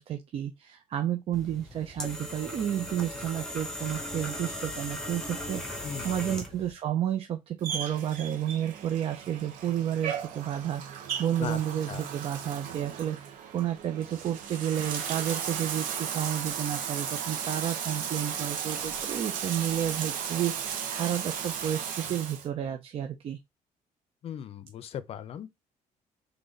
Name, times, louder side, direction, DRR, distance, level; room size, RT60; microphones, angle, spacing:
voice 1, 0.0-23.4, right 10 dB, 45° right, 0.5 m, -31 dB
sound 1, 1.3-6.7, left 1 dB, 5° left, 1.1 m, -38 dB
voice 2, 5.8-6.3 11.4-11.6 11.9-12.0 24.2-25.5, left 9 dB, 45° left, 0.5 m, -38 dB
Bathtub (filling or washing), 7.6-22.5, right 8 dB, 85° right, 0.9 m, -35 dB
4.0 x 3.3 x 3.8 m
cardioid pair, 160°, 14 cm